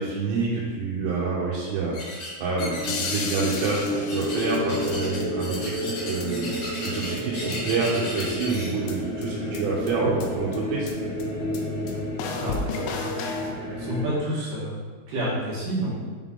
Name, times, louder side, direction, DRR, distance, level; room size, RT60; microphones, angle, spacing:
voice 1, 0.0-6.5 6.8-10.9, right 4 dB, 90° right, -6 dB, 3.4 m, -28 dB
sound 1, 1.9-2.3 2.6-3.8 4.1-8.7, left 2 dB, 65° left, 1.7 m, -35 dB
sound 2, 2.5-14.1, left 1 dB, 50° left, 1.6 m, -31 dB
sound 3, 2.9-4.9 5.2-5.3 5.5-5.6 5.9-6.0 6.2-6.3 6.5-6.6 6.9-7.0 7.2-7.9 8.2-8.3 8.5-8.6 8.9-9.0 9.2-9.3 9.6-9.7 9.9-10.0 10.2-10.3 10.5-10.6 10.9-11.0 11.2-11.3 11.5-11.6 11.9-12.0 12.2-13.5, left 5 dB, 90° left, 2.4 m, -33 dB
voice 2, 12.4-12.9 13.8-14.8 15.1-15.9, right 1 dB, 60° right, -8 dB, 2.3 m, -29 dB
7.8 x 3.6 x 3.7 m, 1.5 s
omnidirectional pair, 5.6 m